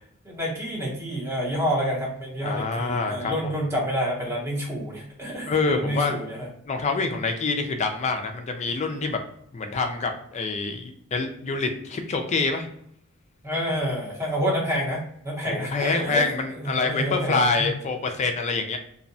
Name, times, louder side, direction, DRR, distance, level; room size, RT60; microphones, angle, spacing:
voice 1, 0.2-6.5 7.0-7.1 13.4-16.3 16.6-17.7, equal, 10° right, -4 dB, 0.7 m, -28 dB
voice 2, 2.4-3.5 5.5-6.1 6.7-9.2 9.5-12.7 15.4-18.8, left 4 dB, 30° left, 5 dB, 0.3 m, -26 dB
2.6 x 2.1 x 2.6 m, 0.70 s
head